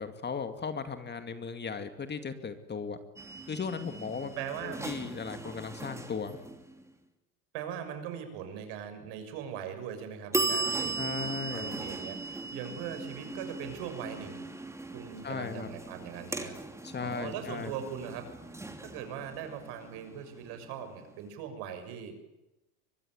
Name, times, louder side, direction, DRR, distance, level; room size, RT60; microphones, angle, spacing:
voice 1, 0.0-3.0 3.5-4.3 4.6-6.4 11.0-11.8 15.2-15.7 16.8-17.7, left 5 dB, 20° left, 9 dB, 2.3 m, -37 dB
sound 1, 3.2-6.9 10.3-21.0, right 2 dB, 5° right, 2.9 m, -38 dB
voice 2, 4.4-5.0 7.5-11.0 11.5-14.5 14.9-16.6 17.0-22.2, right 8 dB, 60° right, 8 dB, 6.7 m, -40 dB
24.0 x 22.0 x 9.6 m, 0.96 s
supercardioid pair, 110°, 45 cm